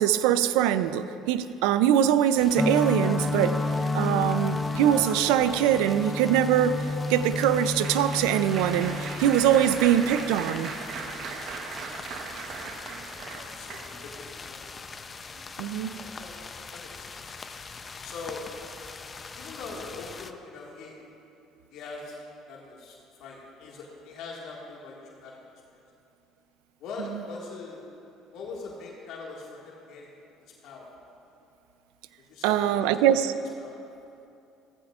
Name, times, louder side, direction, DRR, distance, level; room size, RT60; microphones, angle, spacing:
voice 1, 0.0-3.6 3.9-6.8 7.1-10.7 15.6-16.0 32.4-33.3, right 10 dB, 85° right, 12 dB, 0.5 m, -23 dB
sound 1, 2.4-20.3, left 4 dB, 30° left, 0.6 m, -43 dB
sound 2, 2.5-11.0, left 2 dB, 5° left, 0.8 m, -31 dB
Applause, 6.2-14.2 14.8-15.1 15.4-15.5, right 5 dB, 60° right, 1.1 m, -39 dB
voice 2, 13.2-14.7 15.9-16.4 16.7-17.4 17.7-18.4 19.4-21.0 21.7-22.2 22.5-25.4 25.7-25.8 26.8-27.8 28.3-30.1 30.6-30.9 32.2-33.2 33.6-33.8, left 3 dB, 70° left, -3 dB, 1.9 m, -42 dB
16.0 x 14.5 x 2.5 m, 2.7 s
supercardioid pair, 90°, 0 cm